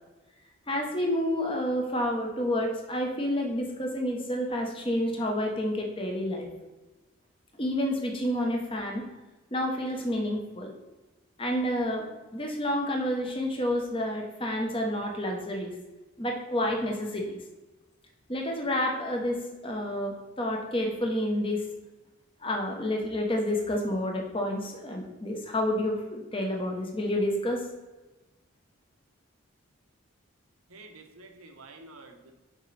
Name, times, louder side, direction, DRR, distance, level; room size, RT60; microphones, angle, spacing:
voice 1, 0.7-6.5 7.6-9.1 9.5-10.7 11.4-12.1 12.3-15.8 16.2-17.4 18.3-21.6 22.4-27.6, left 1 dB, 25° left, 1 dB, 0.9 m, -29 dB
voice 2, 30.7-32.3, right 2 dB, 85° right, 4 dB, 1.0 m, -49 dB
6.4 x 5.3 x 3.3 m, 1.1 s
head